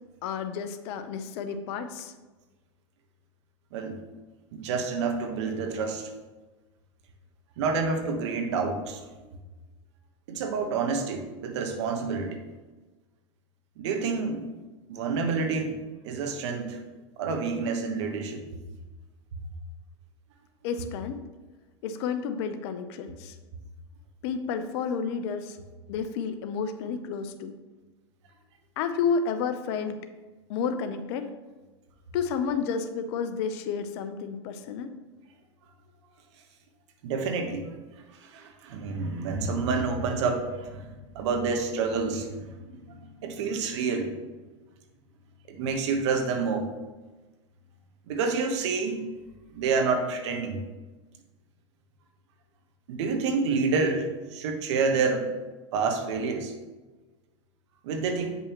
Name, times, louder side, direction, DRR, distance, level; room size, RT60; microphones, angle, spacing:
voice 1, 0.2-2.1 20.6-21.2 21.8-23.3 24.2-25.6 25.9-27.5 28.8-30.0 30.5-31.2 32.1-34.9, left 6 dB, 60° left, 9 dB, 0.8 m, -31 dB
voice 2, 4.5-6.1 7.6-9.0 10.3-12.4 13.8-14.5 14.9-15.8 16.0-16.8 17.2-18.4 37.0-37.7 38.2-44.1 45.5-46.7 48.1-49.0 49.5-50.6 52.9-55.3 55.7-56.6 57.8-58.4, right 4 dB, 65° right, 5 dB, 1.2 m, -28 dB
8.5 x 5.5 x 3.0 m, 1.2 s
hypercardioid pair, 110°, 16 cm